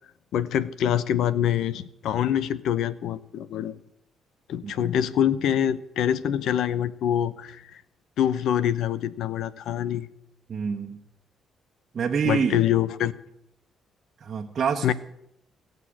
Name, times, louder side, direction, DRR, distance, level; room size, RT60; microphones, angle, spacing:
voice 1, 0.3-3.7 4.5-7.8 8.2-10.1 12.2-13.1 14.8-14.9, left 10 dB, 80° left, 17 dB, 0.8 m, -25 dB
voice 2, 10.5-11.0 11.9-12.6 14.2-14.9, right 6 dB, 50° right, 2 dB, 1.2 m, -27 dB
17.0 x 6.7 x 9.9 m, 0.77 s
cardioid pair, 90°, 0 cm